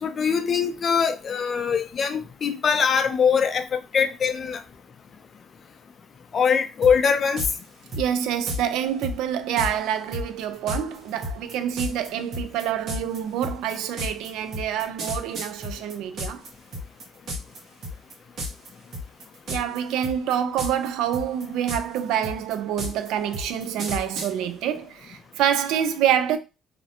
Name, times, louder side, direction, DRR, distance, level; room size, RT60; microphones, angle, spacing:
voice 1, 0.0-4.6 6.3-7.4, left 6 dB, 45° left, 0.4 m, -22 dB
sound 1, 6.8-6.9 7.4-7.5 7.9-8.6 9.0-9.1 9.6-9.7 10.1-16.5 16.7-17.6 17.8-18.1 18.4-18.7 18.9-19.8 20.0-20.9 21.1-24.3, left 1 dB, 60° right, 0.9 m, -31 dB
voice 2, 7.9-16.4 19.5-26.4, right 9 dB, 80° right, 0.3 m, -26 dB
2.5 x 2.0 x 2.7 m
cardioid pair, 100°, 0 cm